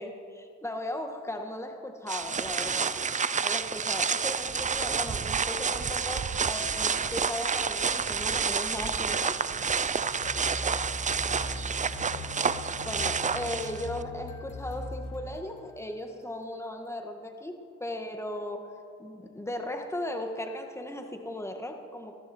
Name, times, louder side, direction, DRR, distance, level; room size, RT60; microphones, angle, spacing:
voice 1, 0.0-2.9 3.4-9.4 12.8-22.2, left 1 dB, 10° left, 4 dB, 1.9 m, -37 dB
sound 1, 2.1-14.0, right 6 dB, 25° right, 0.6 m, -29 dB
sound 2, 10.2-15.9, left 2 dB, 75° left, 1.7 m, -40 dB
20.0 x 13.5 x 4.6 m, 2.3 s
cardioid pair, 90°, 30 cm